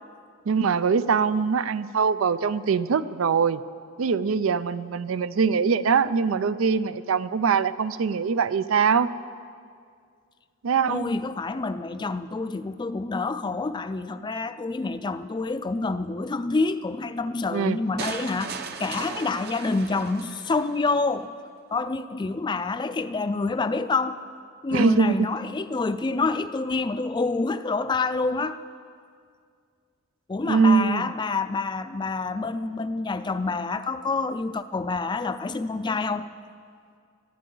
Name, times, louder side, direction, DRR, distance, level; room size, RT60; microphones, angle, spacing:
voice 1, 0.5-3.6 4.0-9.1 10.6-11.1 17.5-17.8 24.7-25.3 30.5-31.1, right 5 dB, 80° right, 14 dB, 0.4 m, -22 dB
voice 2, 10.9-21.3 21.7-24.2 24.6-28.6 30.3-36.3, left 3 dB, 20° left, 12 dB, 0.4 m, -27 dB
sound 1, 18.0-21.0, right 5 dB, 50° right, 0.8 m, -37 dB
19.5 x 13.5 x 3.9 m, 2.2 s
head